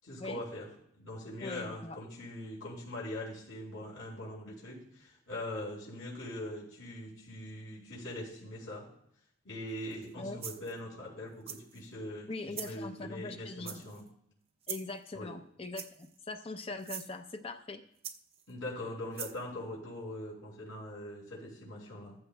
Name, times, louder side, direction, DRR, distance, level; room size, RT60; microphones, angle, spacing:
voice 1, 0.0-0.7 1.0-8.9 9.4-12.3 12.6-14.0 15.1-15.3 18.5-22.2, left 1 dB, 75° left, -5 dB, 5.2 m, -42 dB
voice 2, 1.4-2.0 10.2-10.4 12.3-13.8 14.7-17.8, left 3 dB, 30° left, 7 dB, 0.6 m, -42 dB
sound 1, 9.9-10.1 10.4-10.8 11.5-11.8 12.5-12.8 13.6-14.1 14.6-15.0 15.7-16.2 16.8-17.1 18.0-18.5 19.1-19.4, right 8 dB, 30° right, 0.5 m, -42 dB
14.5 x 13.5 x 2.2 m, 0.71 s
head